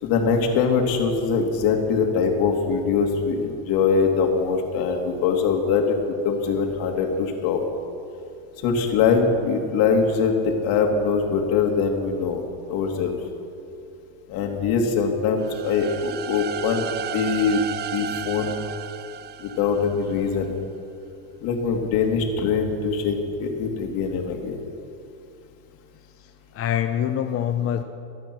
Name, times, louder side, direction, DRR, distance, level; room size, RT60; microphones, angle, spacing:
voice 1, 0.0-7.6 8.6-12.4 12.7-13.1 14.3-16.9 17.1-17.6 17.9-18.6 19.4-20.5 21.4-24.6, left 5 dB, 65° left, 3 dB, 2.7 m, -22 dB
sound 1, 15.4-20.2, right 10 dB, 25° right, 0.5 m, -34 dB
voice 2, 26.2-27.8, left 10 dB, 35° left, 6 dB, 0.8 m, -25 dB
24.0 x 9.5 x 6.2 m, 2.6 s
supercardioid pair, 130°, 38 cm